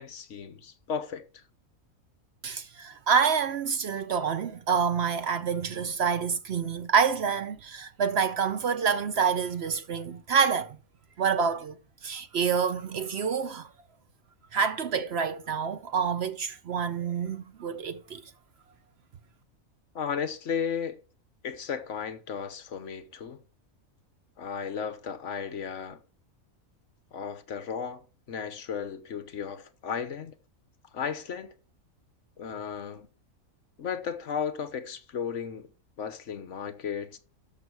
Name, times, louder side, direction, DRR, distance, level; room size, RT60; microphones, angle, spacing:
voice 1, 0.0-1.4 19.9-21.0 21.4-23.4 24.4-26.0 27.1-30.4 30.9-31.5 32.4-33.1 33.8-35.7 36.0-37.2, left 7 dB, 60° left, 1.2 m, -34 dB
voice 2, 2.4-10.8 11.2-11.7 12.0-13.7 14.5-18.2, right 6 dB, 55° right, 0.9 m, -27 dB
12.5 x 5.9 x 4.6 m
omnidirectional pair, 1.4 m